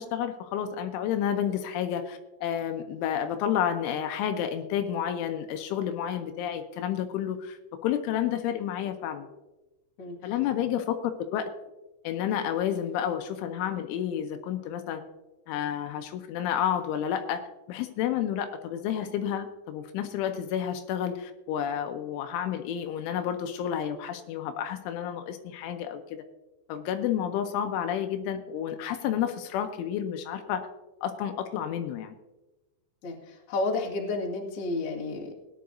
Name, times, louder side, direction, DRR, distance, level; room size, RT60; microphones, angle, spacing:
voice 1, 0.0-7.6 7.8-9.3 10.2-11.5 12.0-15.0 15.5-17.4 17.7-26.2 26.7-30.7 31.0-32.2, left 9 dB, 85° left, 7 dB, 3.1 m, -30 dB
voice 2, 10.0-10.4 33.0-35.3, left 3 dB, 45° left, -3 dB, 2.0 m, -31 dB
19.0 x 10.5 x 2.7 m, 1.0 s
omnidirectional pair, 5.7 m